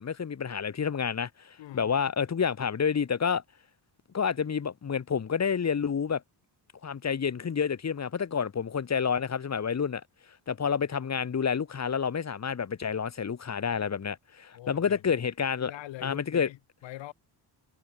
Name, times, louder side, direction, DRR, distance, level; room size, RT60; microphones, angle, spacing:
voice 1, 0.0-3.4 4.1-6.2 6.8-10.0 10.5-15.7 16.0-16.5, left 6 dB, 35° left, 5.1 m, -29 dB
voice 2, 1.6-1.9 14.5-15.2 15.6-17.1, left 15 dB, 85° left, 5.6 m, -43 dB
cardioid pair, 125°, 44 cm